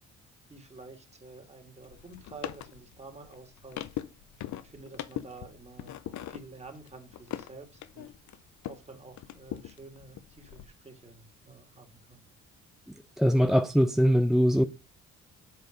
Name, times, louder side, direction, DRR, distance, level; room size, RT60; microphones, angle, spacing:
voice 1, 0.5-3.9 4.6-7.7 7.9-8.1 8.7-12.2, right 3 dB, 20° right, 2.4 m, -49 dB
sound 1, 1.8-8.9 9.2-10.6, left 12 dB, 70° left, 0.7 m, -41 dB
voice 2, 13.2-14.6, equal, ahead, 0.4 m, -22 dB
7.9 x 4.6 x 5.1 m
cardioid pair, 90°, 30 cm